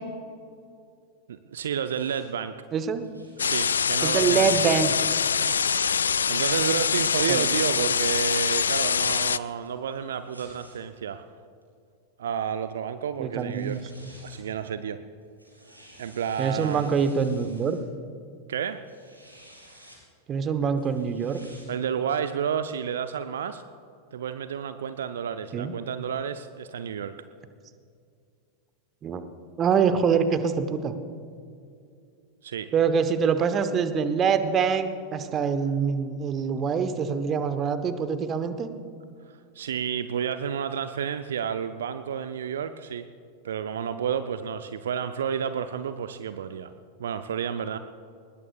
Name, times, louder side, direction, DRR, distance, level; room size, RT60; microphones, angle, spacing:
voice 1, 1.3-2.5 3.4-4.8 5.9-11.3 12.2-13.8 14.2-15.0 16.0-16.9 18.5-18.8 21.7-23.6 24.1-27.2 32.4-32.7 39.3-43.1 43.4-46.7 47.0-47.8, right 8 dB, 65° right, 10 dB, 0.6 m, -31 dB
sound 1, 1.9-2.2 3.0-3.9 4.8-7.5 8.4-10.8 11.6-11.7 13.2-13.3 13.5-14.5 15.2-17.8 18.6-20.0 20.8-21.7, equal, 90° right, 4.3 m, -52 dB
voice 2, 2.7-3.0 4.0-4.9 7.3-7.5 13.2-13.8 16.4-17.8 20.3-21.4 25.5-25.7 29.0-29.2 29.6-30.9 32.7-38.7, right 6 dB, 25° right, 10 dB, 1.1 m, -25 dB
sound 2, 3.4-9.4, left 6 dB, 70° left, 0.3 m, -24 dB
21.5 x 20.0 x 2.4 m, 2.4 s
figure-of-eight pair, 90°, 0 cm